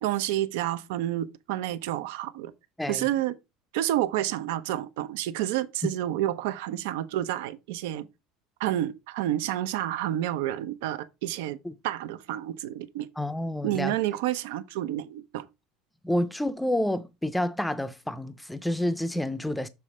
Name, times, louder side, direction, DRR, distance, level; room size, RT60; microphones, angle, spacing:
voice 1, 0.0-2.5 2.9-3.3 3.7-8.1 8.6-11.6 11.8-13.1 13.6-15.5, right 13 dB, 90° right, 0.6 m, -29 dB
voice 2, 2.8-3.1 5.8-5.9 11.6-11.7 13.2-14.0 16.0-19.7, left 1 dB, 5° left, 0.5 m, -29 dB
7.0 x 3.2 x 4.9 m
cardioid pair, 160°, 0 cm